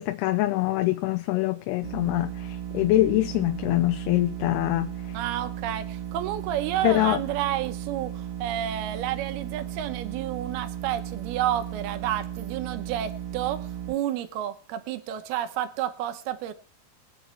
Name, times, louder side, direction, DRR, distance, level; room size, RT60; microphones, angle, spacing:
voice 1, 0.0-2.3 2.7-4.9 6.8-7.2, left 16 dB, 90° left, 2.7 m, -24 dB
sound 1, 1.8-13.9, right 10 dB, 45° right, 1.7 m, -35 dB
voice 2, 5.1-16.5, right 11 dB, 85° right, 2.9 m, -30 dB
22.0 x 9.3 x 3.4 m
omnidirectional pair, 4.5 m